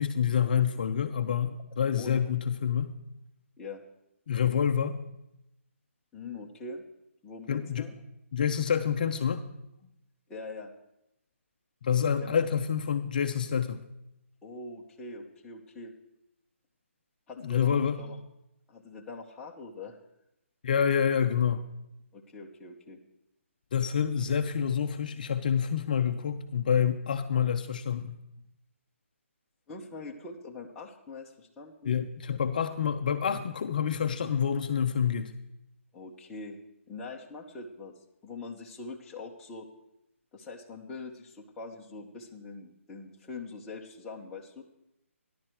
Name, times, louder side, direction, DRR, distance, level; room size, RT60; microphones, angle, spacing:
voice 1, 0.0-3.0 4.3-5.0 7.5-7.9 8.3-9.4 11.8-13.8 17.4-18.0 20.6-21.6 23.7-28.1 31.9-35.3, left 7 dB, 35° left, 7 dB, 0.6 m, -27 dB
voice 2, 2.0-2.3 3.6-3.8 6.1-6.8 7.2-7.9 9.8-9.9 10.3-10.7 12.2-12.5 14.4-15.9 17.3-18.2 18.7-20.0 22.1-23.0 29.7-32.0 35.9-36.6 36.9-39.7 40.3-44.6, left 3 dB, 5° left, -3 dB, 0.8 m, -43 dB
14.0 x 11.0 x 4.5 m, 0.86 s
hypercardioid pair, 170°, 8 cm